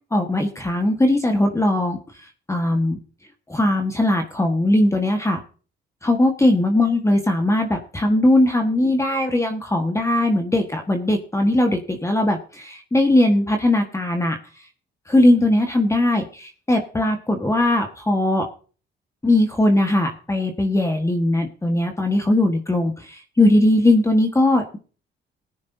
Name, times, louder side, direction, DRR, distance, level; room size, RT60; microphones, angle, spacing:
voice 1, 0.1-2.0 2.5-3.0 3.5-5.4 6.0-14.4 15.1-18.5 19.2-24.8, left 1 dB, 15° left, 4 dB, 1.5 m, -19 dB
18.0 x 9.9 x 2.7 m, 0.38 s
cardioid pair, 90°, 20 cm